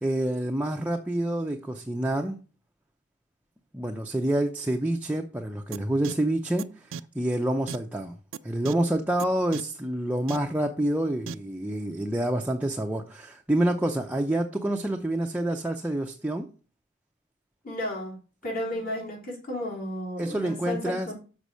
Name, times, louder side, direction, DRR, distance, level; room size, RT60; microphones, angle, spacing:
voice 1, 0.0-2.4 3.7-6.9 7.1-8.1 8.4-16.5 20.2-21.1, right 1 dB, 10° right, 0.6 m, -27 dB
sound 1, 5.7-5.8 6.0-6.1 6.6-6.7 6.9-7.0 7.7-7.8 8.3-8.4 8.7-8.8 9.2-9.3 9.5-9.6 10.3-10.4 11.3-11.4, right 6 dB, 85° right, 0.4 m, -35 dB
voice 2, 17.6-21.1, left 1 dB, 50° left, 3.8 m, -33 dB
6.8 x 5.2 x 6.3 m
head